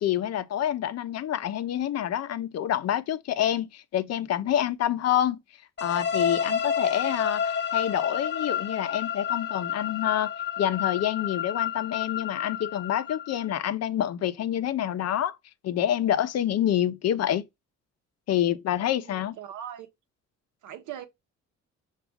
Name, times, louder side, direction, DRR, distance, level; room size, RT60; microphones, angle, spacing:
voice 1, 0.0-5.4 5.8-10.3 10.6-15.4 15.6-17.5 18.3-19.4, left 11 dB, 60° left, 0.6 m, -27 dB
sound 1, 5.8-13.6, left 8 dB, 35° left, 0.9 m, -30 dB
voice 2, 19.0-19.9 20.6-21.1, right 10 dB, 75° right, 0.8 m, -40 dB
5.9 x 2.4 x 3.5 m
cardioid pair, 90°, 30 cm